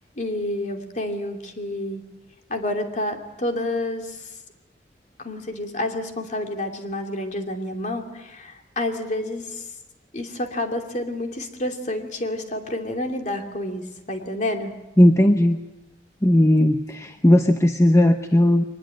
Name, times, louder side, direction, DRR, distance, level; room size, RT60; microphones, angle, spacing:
voice 1, 0.2-2.0 2.5-4.2 5.2-9.6 10.1-14.7, left 1 dB, 40° left, 4 dB, 2.7 m, -29 dB
voice 2, 15.0-15.6 16.2-18.6, left 1 dB, 15° left, 6 dB, 0.8 m, -16 dB
23.0 x 20.5 x 8.8 m, 0.98 s
head